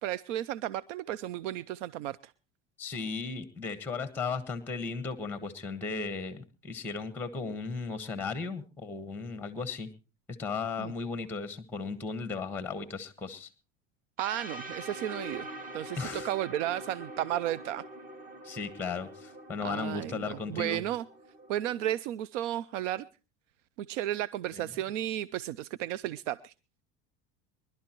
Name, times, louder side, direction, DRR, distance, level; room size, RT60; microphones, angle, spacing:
voice 1, 0.0-2.3 10.8-10.9 14.2-15.5 15.7-17.8 19.6-21.0 21.5-23.1 23.9-26.5, right 12 dB, 85° right, 0.6 m, -33 dB
voice 2, 2.8-9.9 10.4-13.5 16.0-16.3 18.4-20.8 24.5-24.7, left 4 dB, 5° left, 1.4 m, -36 dB
sound 1, 14.2-22.0, right 1 dB, 25° right, 2.1 m, -44 dB
24.5 x 12.0 x 3.0 m
supercardioid pair, 105°, 36 cm